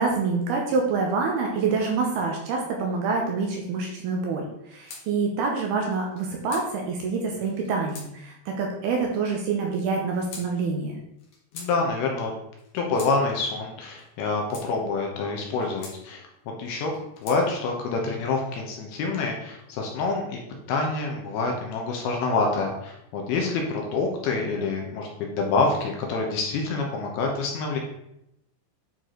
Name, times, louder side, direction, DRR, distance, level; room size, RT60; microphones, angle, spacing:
voice 1, 0.0-11.0, right 4 dB, 75° right, 1 dB, 2.5 m, -26 dB
sound 1, 4.9-5.1 5.9-6.7 7.5-8.1 8.9-9.4 10.2-10.5 11.2-11.7 12.6-13.1 14.0-14.7 15.5-16.0 16.8-17.4, left 4 dB, 55° left, 2.1 m, -43 dB
voice 2, 11.5-12.3 12.7-16.3 16.6-16.9 17.2-20.4 20.7-27.8, left 3 dB, 70° left, 1 dB, 2.6 m, -27 dB
9.4 x 4.7 x 3.8 m, 0.81 s
omnidirectional pair, 5.2 m